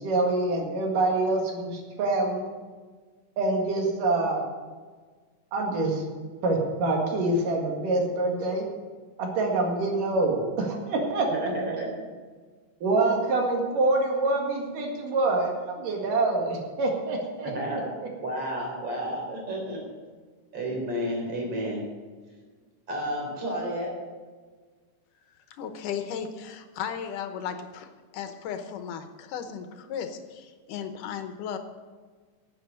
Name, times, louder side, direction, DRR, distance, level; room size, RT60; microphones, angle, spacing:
voice 1, 0.0-2.5 3.4-4.4 5.5-6.0 6.4-8.7 9.2-11.3 12.8-17.5, right 2 dB, 85° right, 1 dB, 3.6 m, -26 dB
voice 2, 11.3-11.9 17.4-17.8 18.2-19.8 20.5-21.8 22.9-23.9, equal, 45° right, -1 dB, 4.7 m, -31 dB
voice 3, 25.5-31.6, left 8 dB, 85° left, 8 dB, 2.5 m, -35 dB
11.5 x 8.3 x 7.8 m, 1.5 s
omnidirectional pair, 3.7 m